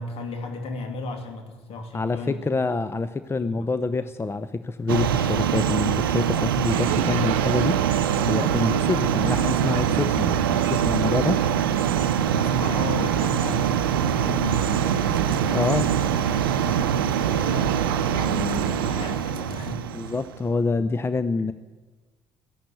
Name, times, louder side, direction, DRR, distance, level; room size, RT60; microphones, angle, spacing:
voice 1, 0.0-2.5 3.4-3.7 4.0-4.1 8.5-8.8 12.3-19.9, left 3 dB, 60° left, 5 dB, 2.6 m, -35 dB
voice 2, 1.9-7.8 8.3-10.3 10.7-11.4 15.5-15.9 19.7-21.5, left 3 dB, 20° left, 13 dB, 0.7 m, -26 dB
sound 1, 4.9-20.4, right 9 dB, 90° right, 0.6 m, -24 dB
sound 2, 6.7-19.2, right 9 dB, 70° right, 0.9 m, -31 dB
15.0 x 11.5 x 8.4 m, 1.3 s
hypercardioid pair, 55°, 11 cm